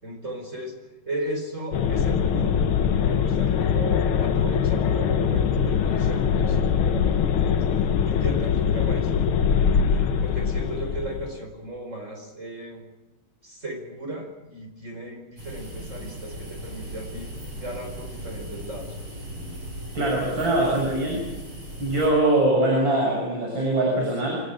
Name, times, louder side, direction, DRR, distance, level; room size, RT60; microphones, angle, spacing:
voice 1, 0.0-0.8 1.0-2.6 2.8-7.6 8.0-9.1 9.9-12.8 13.4-19.0, right 1 dB, 35° right, 3 dB, 5.1 m, -36 dB
sound 1, 1.7-11.4, left 7 dB, 90° left, 2.0 m, -22 dB
sound 2, 15.4-22.1, right 1 dB, 80° right, 8.5 m, -38 dB
voice 2, 19.9-21.3 21.8-24.4, right 1 dB, 65° right, -2 dB, 7.7 m, -22 dB
25.5 x 19.0 x 9.0 m, 1.0 s
omnidirectional pair, 2.3 m